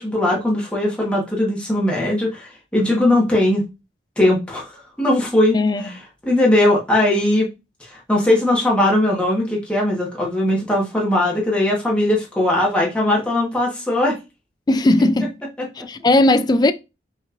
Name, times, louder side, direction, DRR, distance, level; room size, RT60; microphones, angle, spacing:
voice 1, 0.0-3.6 4.2-4.7 5.0-5.6 6.2-7.5 7.8-14.2 15.8-15.9, left 1 dB, 5° left, 1.2 m, -19 dB
voice 2, 14.7-15.4 15.9-16.7, left 2 dB, 25° left, 0.3 m, -16 dB
5.4 x 3.0 x 2.5 m
head